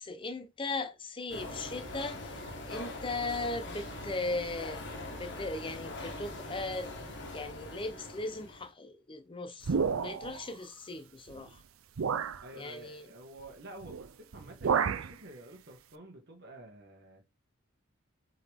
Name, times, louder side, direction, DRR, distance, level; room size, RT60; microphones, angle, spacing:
voice 1, 0.0-7.0 7.3-11.6 12.5-13.1, left 2 dB, 25° left, 0.6 m, -38 dB
sound 1, 1.3-8.7, left 2 dB, 60° left, 1.5 m, -42 dB
sound 2, 9.6-10.4 11.3-11.4 12.0-12.4 13.8-14.1 14.3-15.1, right 6 dB, 90° right, 0.5 m, -30 dB
voice 2, 12.2-17.2, right 1 dB, 55° right, 1.5 m, -50 dB
7.9 x 3.9 x 3.5 m
head